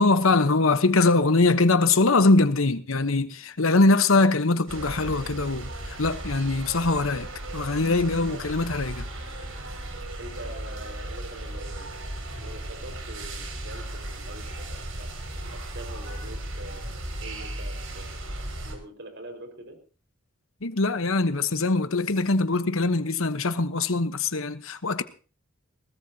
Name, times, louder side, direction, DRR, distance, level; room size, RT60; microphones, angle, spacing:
voice 1, 0.0-9.1 20.6-25.0, left 3 dB, 80° left, 1.1 m, -22 dB
sound 1, 4.7-18.7, right 1 dB, 80° right, 5.9 m, -36 dB
voice 2, 10.2-12.1 12.4-15.1 15.5-18.1 18.6-19.8, right 1 dB, 60° right, 5.1 m, -44 dB
21.5 x 19.0 x 2.9 m
head